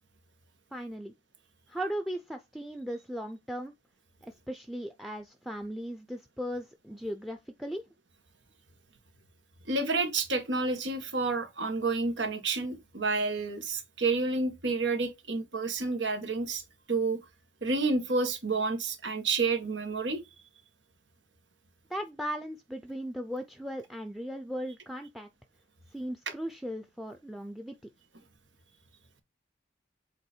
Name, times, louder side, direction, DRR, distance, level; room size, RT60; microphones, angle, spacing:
voice 1, 0.7-1.1 1.7-3.7 4.2-7.8 21.9-25.3 25.9-27.8, equal, ahead, 0.5 m, -37 dB
voice 2, 9.7-16.6 16.9-17.2 17.6-20.2, right 3 dB, 85° right, 1.8 m, -29 dB
8.1 x 3.0 x 4.4 m
head